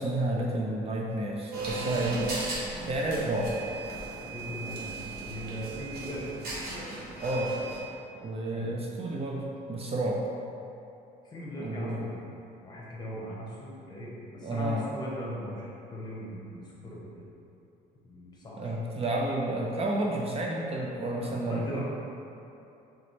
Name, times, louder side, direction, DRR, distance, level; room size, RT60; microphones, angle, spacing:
voice 1, 0.0-3.7 7.2-7.5 8.2-10.2 11.6-12.0 14.4-14.9 18.6-21.8, right 1 dB, 35° right, -1 dB, 0.4 m, -31 dB
sound 1, 1.5-7.8, right 3 dB, 65° right, 1.0 m, -36 dB
voice 2, 4.3-6.3 8.5-8.7 11.2-12.2 12.6-17.3 18.0-18.9 21.1-21.8, equal, 25° left, -5 dB, 1.0 m, -40 dB
3.9 x 3.3 x 3.2 m, 2.8 s
cardioid pair, 110°, 17 cm